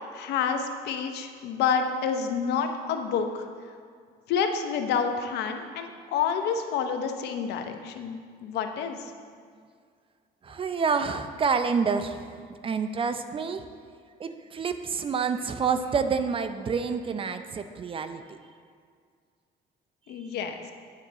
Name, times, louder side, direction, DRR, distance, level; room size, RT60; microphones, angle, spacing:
voice 1, 0.1-3.5 4.3-9.1 20.1-20.7, left 6 dB, 80° left, 6 dB, 0.8 m, -29 dB
voice 2, 10.4-13.7 14.2-18.2, right 5 dB, 30° right, 9 dB, 0.5 m, -28 dB
9.2 x 4.0 x 7.3 m, 2.1 s
cardioid pair, 110°, 17 cm